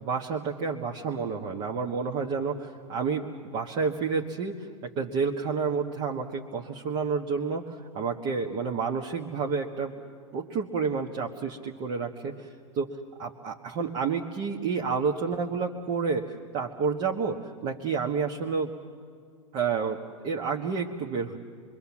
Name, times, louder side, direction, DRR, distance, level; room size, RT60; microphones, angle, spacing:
voice 1, 0.0-4.7 5.0-9.9 10.3-12.5 12.7-18.7 19.5-20.0 20.2-21.4, right 5 dB, 45° right, 0 dB, 1.6 m, -30 dB
25.5 x 23.5 x 7.3 m, 2.2 s
hypercardioid pair, 105°, 16 cm